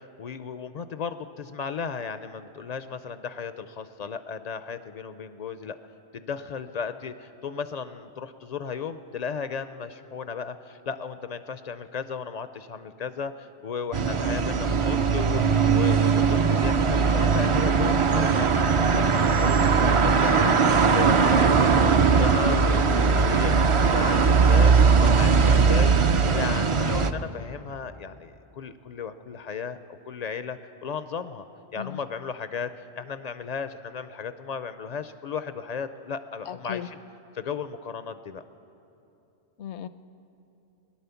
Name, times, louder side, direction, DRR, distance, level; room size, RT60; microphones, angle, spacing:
voice 1, 0.0-5.8 6.1-19.1 19.4-25.9 26.2-29.8 30.0-31.5 31.7-37.0 37.3-38.4, left 6 dB, 55° left, 11 dB, 0.4 m, -35 dB
sound 1, 13.9-27.1, right 5 dB, 55° right, 0.3 m, -20 dB
voice 2, 20.1-20.6 31.7-32.0 36.5-36.9 39.6-39.9, left 10 dB, 75° left, 13 dB, 0.9 m, -37 dB
18.5 x 10.5 x 6.9 m, 2.9 s
omnidirectional pair, 1.2 m